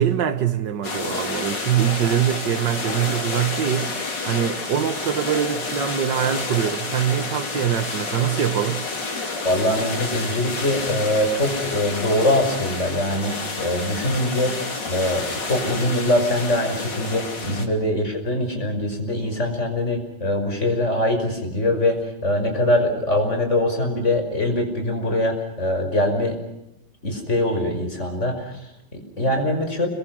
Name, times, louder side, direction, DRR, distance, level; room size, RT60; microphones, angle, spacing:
voice 1, 0.0-8.9 17.5-17.6, right 9 dB, 85° right, 2.0 m, -23 dB
sound 1, 0.8-17.7, left 3 dB, 90° left, 3.6 m, -29 dB
voice 2, 9.4-26.4 27.0-29.9, left 1 dB, 40° left, 6.0 m, -23 dB
30.0 x 23.0 x 6.3 m
omnidirectional pair, 1.9 m